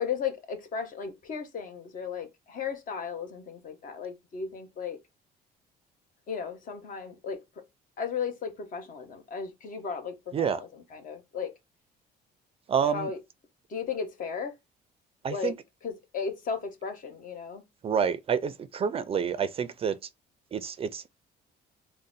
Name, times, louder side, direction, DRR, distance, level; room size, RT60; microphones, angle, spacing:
voice 1, 0.0-5.0 6.3-7.4 8.0-11.5 12.9-13.2 13.7-14.5 15.3-15.5 15.8-17.6, left 6 dB, 55° left, 1.1 m, -35 dB
voice 2, 12.7-13.1 15.2-15.5 17.8-20.0 20.5-21.0, right 7 dB, 35° right, 0.4 m, -28 dB
3.8 x 2.1 x 3.9 m
cardioid pair, 110°, 17 cm